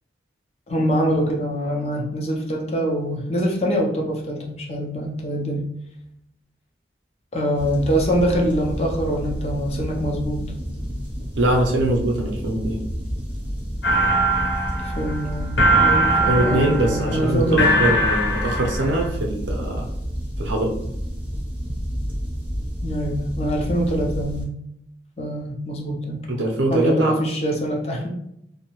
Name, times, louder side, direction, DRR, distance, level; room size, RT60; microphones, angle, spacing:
voice 1, 0.7-5.6 7.3-10.4 14.8-17.7 22.8-24.5 25.2-26.2 26.7-28.1, equal, 35° left, 0 dB, 0.5 m, -24 dB
sound 1, 7.6-24.4, equal, 10° right, 0.6 m, -30 dB
voice 2, 11.4-12.9 16.3-19.9 20.4-20.8 26.3-27.1, right 1 dB, 80° right, 1 dB, 0.6 m, -22 dB
sound 2, 13.8-19.1, right 1 dB, 85° left, 0.9 m, -21 dB
2.6 x 2.0 x 3.0 m, 0.80 s
head